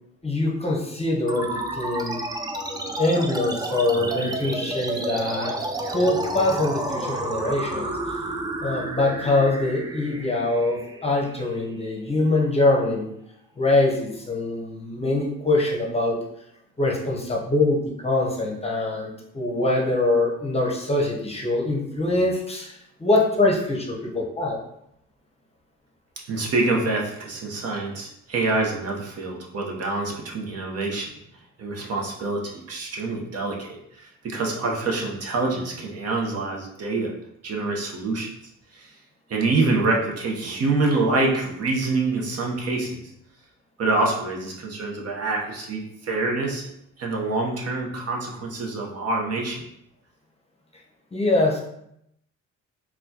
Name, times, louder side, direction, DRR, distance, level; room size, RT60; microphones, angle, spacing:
voice 1, 0.2-2.2 3.0-5.5 5.9-8.2 8.6-13.1 13.6-16.2 16.8-24.6 51.1-51.6, left 2 dB, 20° left, -2 dB, 0.7 m, -23 dB
sound 1, 1.3-12.2, right 2 dB, 15° right, 0.3 m, -31 dB
voice 2, 26.3-31.1 31.6-37.1 37.4-38.3 38.7-38.9 39.3-43.0 43.8-46.7 47.0-49.6, right 3 dB, 55° right, -1 dB, 0.8 m, -26 dB
4.0 x 2.3 x 2.7 m, 0.77 s
cardioid pair, 90°, 30 cm